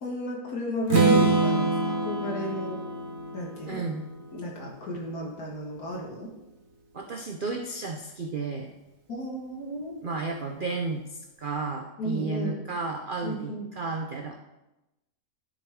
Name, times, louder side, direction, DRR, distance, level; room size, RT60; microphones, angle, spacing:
voice 1, 0.0-2.8 3.3-3.8 4.3-6.3 9.1-10.0 12.0-12.6 13.2-13.7, equal, 60° left, -1 dB, 2.2 m, -33 dB
Strum, 0.9-4.8, right 3 dB, 45° right, 1.4 m, -25 dB
voice 2, 3.7-4.0 6.9-8.7 10.0-14.4, right 3 dB, 70° right, 3 dB, 0.5 m, -33 dB
11.0 x 6.5 x 3.6 m, 0.97 s
omnidirectional pair, 1.8 m